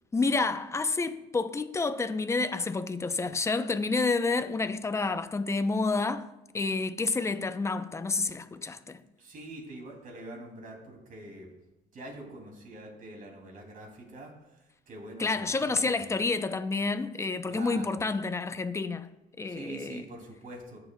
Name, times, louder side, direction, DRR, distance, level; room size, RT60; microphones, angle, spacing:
voice 1, 0.1-6.3 6.5-9.0 15.2-19.1 19.4-20.0, left 3 dB, 15° left, 0.5 m, -29 dB
voice 2, 9.2-11.5 11.9-16.0 17.5-18.0 19.4-20.8, right 2 dB, 55° right, 2.5 m, -44 dB
16.0 x 6.8 x 2.2 m
cardioid pair, 110°, 17 cm